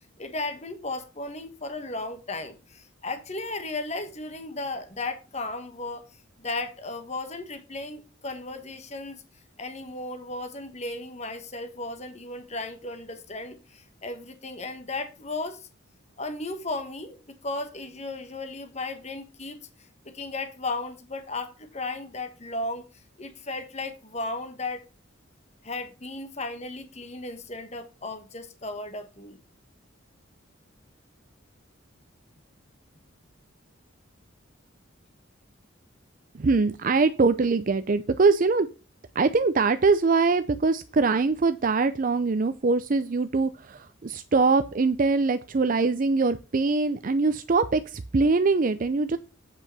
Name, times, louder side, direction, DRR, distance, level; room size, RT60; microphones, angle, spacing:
voice 1, 0.2-6.1 6.4-9.2 9.6-15.7 16.2-19.6 20.0-22.8 23.2-24.9 25.6-29.4, left 2 dB, 35° left, 1.3 m, -35 dB
voice 2, 36.4-38.7 39.2-49.2, right 4 dB, 40° right, 0.5 m, -23 dB
8.7 x 5.5 x 5.4 m
head